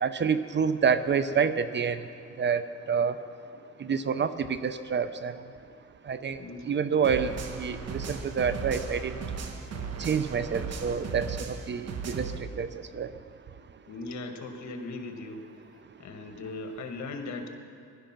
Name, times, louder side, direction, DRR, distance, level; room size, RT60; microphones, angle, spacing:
voice 1, 0.0-2.0 2.4-3.1 3.8-5.3 6.1-6.4 6.7-9.1 10.0-12.7 12.9-13.1, right 6 dB, 40° right, 12 dB, 0.6 m, -28 dB
voice 2, 6.4-6.7 13.9-15.5 16.0-17.6, left 2 dB, 65° left, 5 dB, 1.6 m, -38 dB
sound 1, 7.0-12.4, right 5 dB, 55° right, 1.3 m, -36 dB
16.0 x 11.5 x 6.0 m, 2.3 s
cardioid pair, 90°, 30 cm